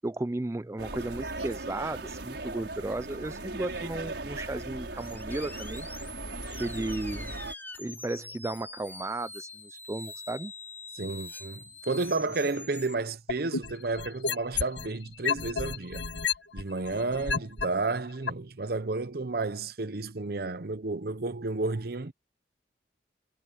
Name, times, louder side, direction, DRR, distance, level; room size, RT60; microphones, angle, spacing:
voice 1, 0.0-5.9 6.5-7.3 7.8-10.5, right 2 dB, 15° right, 0.4 m, -34 dB
sound 1, 0.8-7.5, right 2 dB, 80° right, 6.1 m, -38 dB
sound 2, 5.0-12.9, left 3 dB, 10° left, 4.9 m, -44 dB
voice 2, 10.9-16.0 16.5-22.1, right 3 dB, 60° right, 0.8 m, -31 dB
sound 3, 13.3-14.9 15.2-17.6 18.3-18.4, left 6 dB, 85° left, 1.6 m, -30 dB
head